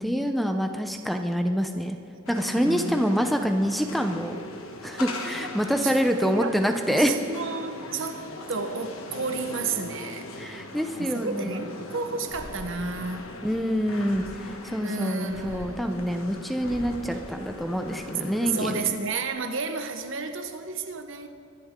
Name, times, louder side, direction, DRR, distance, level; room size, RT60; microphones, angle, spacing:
voice 1, 0.0-2.0 2.3-4.4 4.8-7.2 10.3-11.6 13.4-19.0, equal, ahead, 5 dB, 0.7 m, -26 dB
voice 2, 2.2-3.2 5.8-6.6 6.9-10.3 11.0-13.4 14.8-16.6 18.4-21.3, right 4 dB, 65° right, 7 dB, 1.1 m, -32 dB
sound 1, 2.3-18.8, left 2 dB, 75° left, 1.4 m, -40 dB
sound 2, 12.2-14.7 15.3-18.3 18.7-19.3, left 1 dB, 50° left, 3.1 m, -45 dB
23.5 x 11.5 x 3.7 m, 2.7 s
head